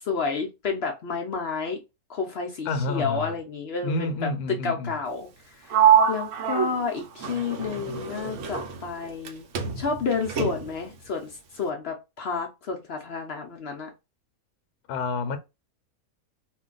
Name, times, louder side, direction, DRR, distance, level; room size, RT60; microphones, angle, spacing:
voice 1, 0.0-1.8 2.1-3.9 4.6-5.3 5.7-9.4 9.8-13.9, left 5 dB, 60° left, 0.7 m, -30 dB
voice 2, 2.6-3.4 3.8-5.0 14.9-15.4, left 3 dB, 85° left, 1.1 m, -29 dB
Sliding door, 5.7-9.3 9.5-10.9, right 8 dB, 65° right, 0.8 m, -25 dB
2.5 x 2.2 x 3.7 m
omnidirectional pair, 1.5 m